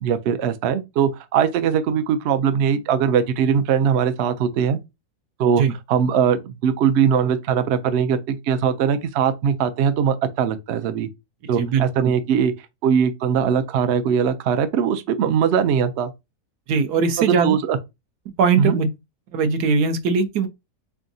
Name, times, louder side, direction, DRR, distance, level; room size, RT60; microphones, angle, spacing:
voice 1, 0.0-4.8 5.4-11.1 11.5-12.5 12.8-16.1 17.2-17.8 18.6-18.8, right 7 dB, 70° right, 0.6 m, -21 dB
voice 2, 11.6-12.1 16.7-17.5 18.4-18.9 19.3-20.5, right 5 dB, 85° right, 1.2 m, -20 dB
3.7 x 3.5 x 2.6 m
omnidirectional pair, 1.6 m